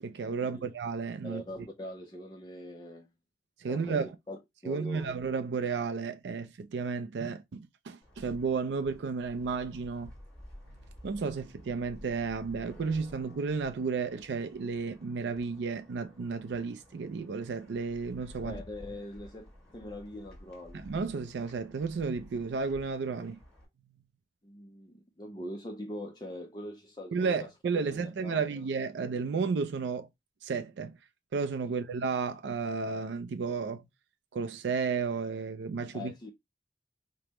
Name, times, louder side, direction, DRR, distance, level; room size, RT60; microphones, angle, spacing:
voice 1, 0.0-1.4 3.6-4.1 4.7-10.1 11.0-18.6 20.7-23.4 27.1-30.1 30.4-31.0 31.3-33.8 34.3-36.1, right 5 dB, 85° right, 0.4 m, -33 dB
voice 2, 1.2-3.1 3.7-5.1 18.4-20.8 24.4-27.5 27.7-28.5 31.7-31.8 35.9-36.3, left 1 dB, 25° left, 0.4 m, -42 dB
sound 1, 8.0-23.6, equal, 5° left, 1.4 m, -52 dB
4.9 x 2.1 x 2.9 m
head